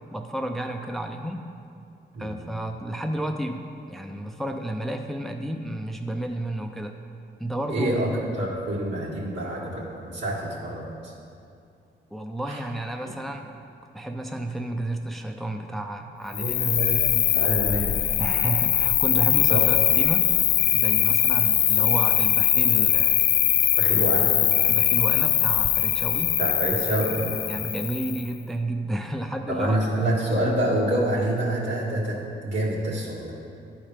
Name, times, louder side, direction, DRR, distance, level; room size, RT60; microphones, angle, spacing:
voice 1, 0.1-1.5 2.2-6.9 7.4-7.9 12.1-13.5 13.9-16.7 18.2-20.3 20.7-23.2 23.9-24.0 24.6-26.4 27.5-30.1, right 1 dB, ahead, 4 dB, 0.5 m, -31 dB
voice 2, 7.7-8.1 8.4-11.1 12.5-12.6 16.3-17.0 17.3-18.0 19.5-19.7 23.8-24.3 26.4-27.4 29.5-33.3, right 1 dB, 70° right, -5 dB, 2.2 m, -27 dB
Cricket, 16.3-28.3, left 10 dB, 70° left, 0.4 m, -22 dB
11.5 x 4.4 x 5.0 m, 2.4 s
cardioid pair, 75°, 19 cm